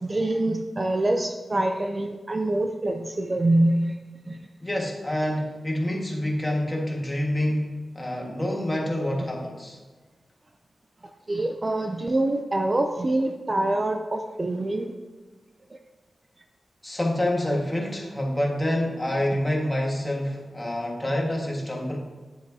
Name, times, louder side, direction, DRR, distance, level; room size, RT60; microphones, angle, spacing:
voice 1, 0.0-4.0 4.3-4.4 11.3-14.9, right 1 dB, 30° right, 5 dB, 0.5 m, -25 dB
voice 2, 4.6-9.8 16.8-22.0, left 1 dB, 15° left, -1 dB, 1.7 m, -27 dB
9.9 x 7.9 x 2.8 m, 1.3 s
wide cardioid pair, 110°, 0 cm